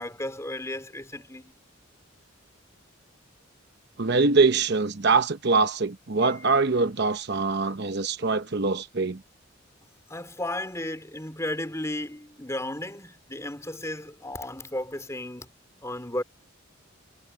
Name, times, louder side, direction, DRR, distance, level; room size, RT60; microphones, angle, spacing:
voice 1, 0.0-1.5 10.1-15.5 15.8-16.2, left 1 dB, 15° left, 4.1 m, -34 dB
voice 2, 4.0-9.2, right 4 dB, 55° right, 0.9 m, -23 dB
head